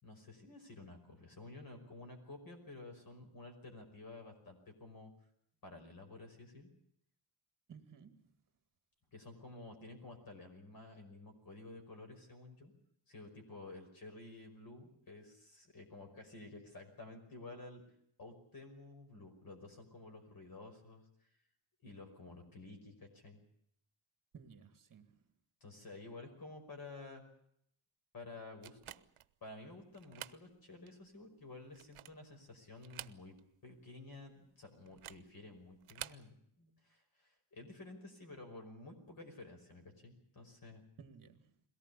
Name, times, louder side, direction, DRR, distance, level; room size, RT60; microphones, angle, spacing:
voice 1, 0.0-5.1 5.6-6.7 9.1-12.7 13.1-17.8 18.2-21.1 21.8-23.4 25.6-27.2 28.1-29.0 29.4-33.4 33.6-40.8, left 2 dB, 45° left, 5 dB, 5.5 m, -52 dB
voice 2, 7.7-8.4 24.3-25.3 41.0-41.6, right 6 dB, 40° right, 8 dB, 2.3 m, -57 dB
sound 1, 28.6-29.3 29.9-30.4 30.9-31.0 31.6-32.3 32.8-33.6 33.8-33.9 34.9-35.3 35.8-36.3, right 13 dB, 80° right, 0.8 m, -49 dB
22.0 x 18.0 x 8.4 m, 0.70 s
wide cardioid pair, 175°, 49 cm